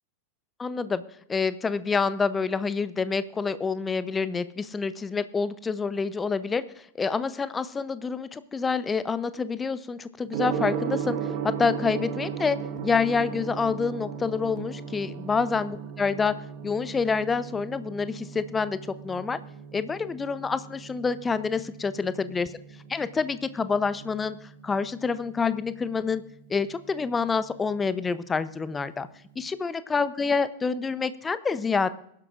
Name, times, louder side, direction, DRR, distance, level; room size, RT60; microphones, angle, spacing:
voice 1, 0.6-1.0 1.3-6.6 7.0-11.2 11.4-12.6 12.8-16.3 16.6-18.8 19.0-19.4 19.7-22.5 22.9-26.2 26.5-29.1 29.4-31.9, left 5 dB, 15° left, 15 dB, 0.6 m, -27 dB
Gong, 10.3-29.3, right 8 dB, 45° right, 1.4 m, -37 dB
22.0 x 11.5 x 2.5 m, 0.72 s
figure-of-eight pair, 90°, 0 cm